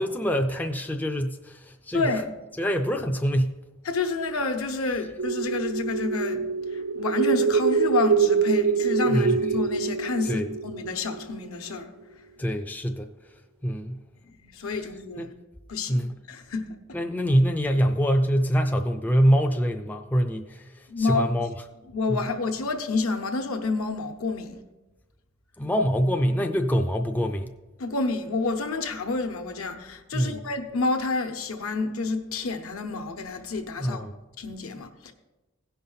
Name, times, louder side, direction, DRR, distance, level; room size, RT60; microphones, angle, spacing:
voice 1, 0.0-2.1 2.6-3.6 9.1-9.4 10.2-10.5 12.4-13.1 13.6-14.0 15.2-15.3 15.9-16.2 16.9-21.6 22.1-22.3 25.6-27.5 30.1-30.5 33.8-34.1, equal, 10° left, 0.3 m, -25 dB
voice 2, 1.9-2.3 3.8-11.9 14.4-15.3 15.7-16.7 20.9-21.4 21.9-24.6 27.8-34.1 34.4-35.1, left 3 dB, 75° left, 1.0 m, -29 dB
sound 1, 5.2-11.7, right 5 dB, 80° right, 0.6 m, -25 dB
16.0 x 5.5 x 4.0 m
head